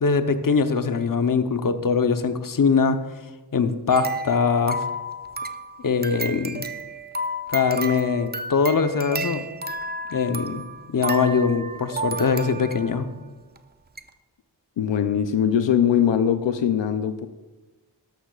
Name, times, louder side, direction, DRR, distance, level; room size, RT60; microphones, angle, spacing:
voice 1, 0.0-3.0 3.5-4.8 5.8-6.7 7.5-9.5 10.1-10.6 10.9-13.1, left 5 dB, 50° left, 8 dB, 0.9 m, -22 dB
sound 1, 3.9-13.1 13.6-13.7 14.0-14.1, right 2 dB, 25° right, 0.6 m, -32 dB
voice 2, 14.8-17.3, left 8 dB, 85° left, 10 dB, 0.6 m, -21 dB
13.0 x 11.5 x 2.4 m, 1.3 s
wide cardioid pair, 60°, 43 cm